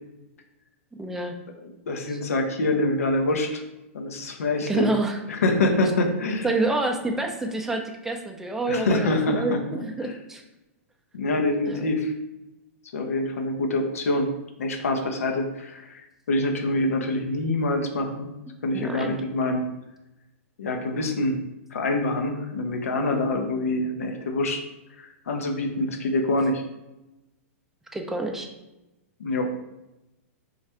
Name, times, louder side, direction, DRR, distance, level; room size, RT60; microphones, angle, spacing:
voice 1, 1.0-1.3 4.7-5.2 6.4-10.4 11.7-11.8 18.7-19.2 27.9-28.5, right 2 dB, 5° right, 2 dB, 0.4 m, -27 dB
voice 2, 1.9-3.6 3.9-4.9 5.3-6.5 8.7-10.1 11.1-12.1 12.9-14.3 14.6-18.3 18.6-19.7 20.6-21.4 21.7-24.6 25.0-26.6 29.2-29.6, left 2 dB, 85° left, 4 dB, 0.6 m, -25 dB
3.2 x 2.4 x 4.2 m, 0.96 s
hypercardioid pair, 130°, 8 cm